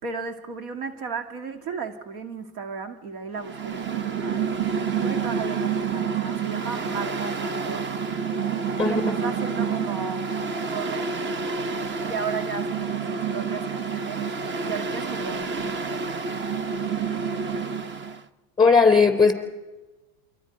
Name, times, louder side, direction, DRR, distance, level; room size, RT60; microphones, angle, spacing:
voice 1, 0.0-4.5 5.0-7.9 8.8-10.3 10.7-11.1 12.0-14.3 14.6-15.9, right 5 dB, 80° right, 6 dB, 2.4 m, -34 dB
Mechanical fan, 3.4-18.2, right 5 dB, 25° right, 0.9 m, -28 dB
voice 2, 18.6-19.3, left 4 dB, 10° left, 6 dB, 3.8 m, -17 dB
28.5 x 24.0 x 5.4 m, 1.2 s
supercardioid pair, 115°, 43 cm